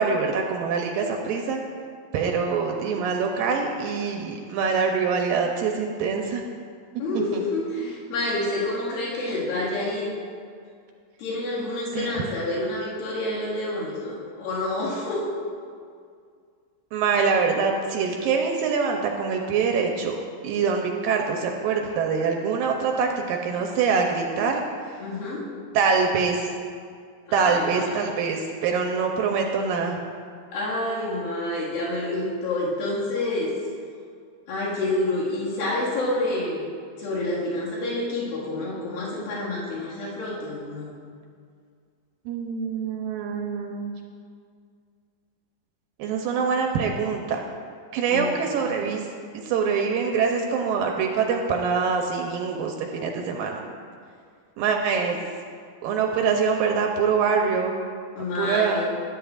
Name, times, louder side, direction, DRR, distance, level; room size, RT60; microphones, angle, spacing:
voice 1, 0.0-1.6 2.1-6.4 7.1-7.4 12.0-12.1 16.9-20.2 20.4-24.6 25.7-26.5 27.3-30.0 42.3-43.9 46.0-47.4 47.9-49.1 49.3-53.6 54.6-55.2 55.8-57.8 58.4-58.8, right 5 dB, 80° right, 2 dB, 2.3 m, -24 dB
voice 2, 7.0-10.1 11.2-15.2 25.0-25.5 27.3-28.1 30.5-33.6 34.5-36.7 37.0-40.9 48.1-48.8 58.2-58.9, left 2 dB, 70° left, -7 dB, 3.6 m, -28 dB
12.5 x 10.5 x 2.4 m, 2.2 s
omnidirectional pair, 4.3 m